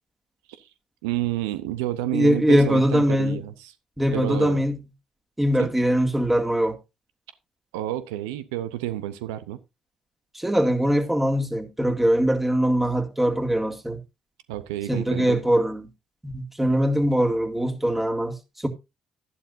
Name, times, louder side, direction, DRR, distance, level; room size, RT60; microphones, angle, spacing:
voice 1, 1.0-3.7 4.1-4.6 5.6-5.7 7.7-9.6 14.5-15.4, right 14 dB, 85° right, 0.6 m, -30 dB
voice 2, 2.1-3.4 4.0-4.8 5.4-6.8 10.3-14.0 14.9-15.9 16.2-18.7, equal, 10° right, 2.2 m, -22 dB
12.0 x 11.5 x 2.6 m
hypercardioid pair, 45°, 2 cm